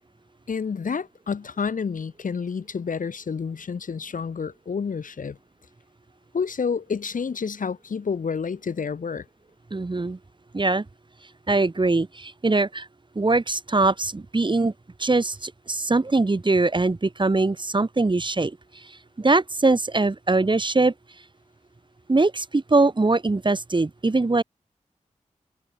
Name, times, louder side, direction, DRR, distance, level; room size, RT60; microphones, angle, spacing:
voice 1, 0.5-5.4 6.3-9.2, left 6 dB, 80° left, 1.6 m, -29 dB
voice 2, 9.7-10.2 10.5-10.8 11.5-12.9 13.1-14.7 15.0-18.6 19.2-20.9 22.1-24.4, right 3 dB, 35° right, 1.4 m, -22 dB
cardioid pair, 50°, 14 cm